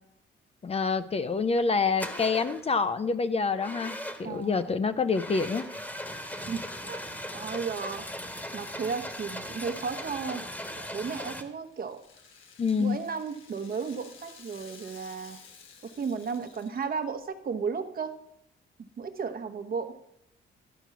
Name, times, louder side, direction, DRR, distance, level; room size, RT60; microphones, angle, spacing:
voice 1, 0.6-5.6 12.6-13.0, left 4 dB, 30° left, 12 dB, 0.5 m, -27 dB
sound 1, 1.4-1.6 2.0-2.7 3.6-4.4 5.1-11.4, equal, 10° left, 1.2 m, -38 dB
voice 2, 4.2-4.7 6.5-7.0 7.3-8.0 8.5-10.4 10.7-12.0 12.8-15.4 15.8-18.2 18.8-20.0, right 5 dB, 50° right, 8 dB, 1.1 m, -34 dB
Rattle (instrument), 11.5-17.2, left 5 dB, 85° left, 1.4 m, -53 dB
12.0 x 4.5 x 7.1 m, 0.80 s
cardioid pair, 90°, 20 cm